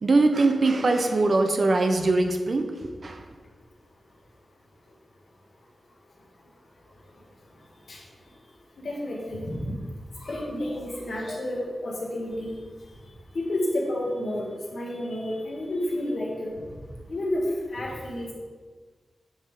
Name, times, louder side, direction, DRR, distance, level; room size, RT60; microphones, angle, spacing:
voice 1, 0.0-3.2, right 2 dB, 45° right, 5 dB, 0.5 m, -22 dB
voice 2, 8.8-9.6 10.2-12.6 13.3-14.5 14.7-16.5 17.1-17.4 17.7-18.3, left 1 dB, 55° left, -3 dB, 1.4 m, -30 dB
8.6 x 3.5 x 4.8 m, 1.5 s
wide cardioid pair, 175°, 0 cm